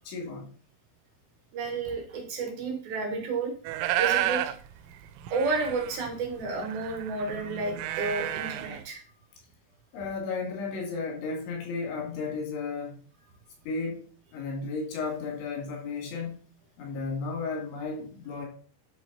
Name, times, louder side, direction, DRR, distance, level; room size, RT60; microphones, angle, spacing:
voice 1, 0.1-0.5 9.9-13.0 13.7-14.0 14.3-16.4 16.8-18.5, left 4 dB, 80° left, 0 dB, 5.2 m, -34 dB
voice 2, 1.5-3.5 4.0-4.4 5.3-9.1, right 3 dB, 60° right, 3 dB, 3.1 m, -31 dB
sound 1, 3.6-4.6 4.9-5.0 5.2-8.8, right 13 dB, 90° right, 3.0 m, -31 dB
10.5 x 6.2 x 4.2 m, 0.43 s
omnidirectional pair, 5.3 m